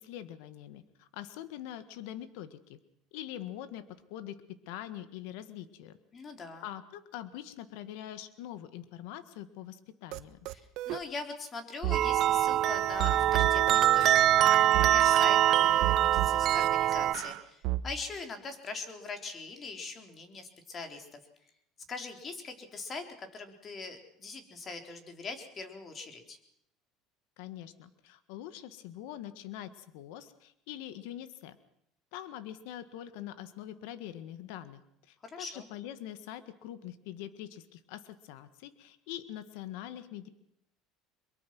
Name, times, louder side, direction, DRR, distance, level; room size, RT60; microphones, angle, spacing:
voice 1, 0.0-2.8 3.1-6.0 6.6-10.4 27.4-31.6 32.1-40.3, left 12 dB, 80° left, 12 dB, 1.6 m, -44 dB
voice 2, 6.1-6.6 10.5-10.6 10.9-21.1 21.9-26.4 35.2-35.7, left 4 dB, 30° left, 6 dB, 4.1 m, -42 dB
sound 1, 10.1-10.2 10.4-11.0 11.8-12.0 13.0-14.2 14.7-15.2 15.8-16.7 17.1-17.8, right 15 dB, 70° right, 1.3 m, -32 dB
sound 2, 11.9-17.1, right 12 dB, 45° right, 0.8 m, -24 dB
23.5 x 22.5 x 6.1 m, 0.74 s
supercardioid pair, 120°, 0 cm